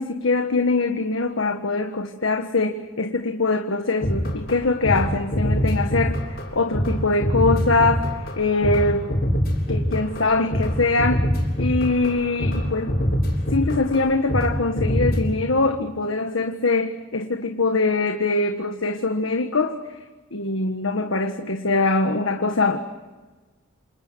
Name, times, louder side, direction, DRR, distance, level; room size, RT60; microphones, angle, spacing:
voice 1, 0.0-6.2 6.5-8.1 8.4-9.1 9.7-11.3 11.6-13.0 13.5-19.8 20.3-22.8, left 3 dB, 75° left, 5 dB, 1.6 m, -23 dB
sound 1, 4.0-4.6 4.8-5.1 5.3-6.5 6.7-14.5 14.8-15.2, equal, 50° left, 7.5 m, -23 dB
28.5 x 28.0 x 6.3 m, 1.3 s
head